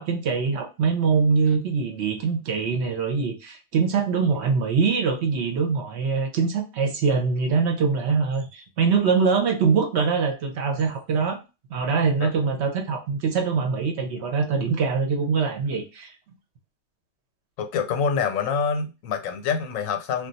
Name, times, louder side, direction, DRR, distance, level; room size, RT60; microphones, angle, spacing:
voice 1, 0.0-11.4 11.7-16.1, right 5 dB, 60° right, 0.9 m, -23 dB
voice 2, 17.6-20.3, left 6 dB, 85° left, 1.0 m, -26 dB
2.4 x 2.2 x 3.9 m
omnidirectional pair, 1.4 m